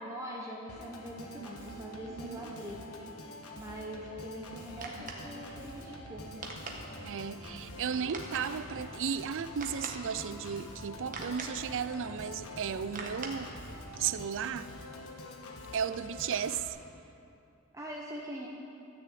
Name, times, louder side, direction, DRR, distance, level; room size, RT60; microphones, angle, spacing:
voice 1, 0.0-2.8 3.5-6.5 17.7-18.5, equal, 15° right, -3 dB, 1.0 m, -42 dB
Organ, 0.7-16.7, left 2 dB, 75° left, 1.3 m, -47 dB
voice 2, 2.1-2.5 7.0-13.5 14.0-14.7 15.7-16.8, right 7 dB, 60° right, 14 dB, 0.4 m, -35 dB
sound 1, 4.4-14.1, right 2 dB, 40° right, 1.3 m, -46 dB
13.0 x 6.8 x 8.5 m, 2.8 s
head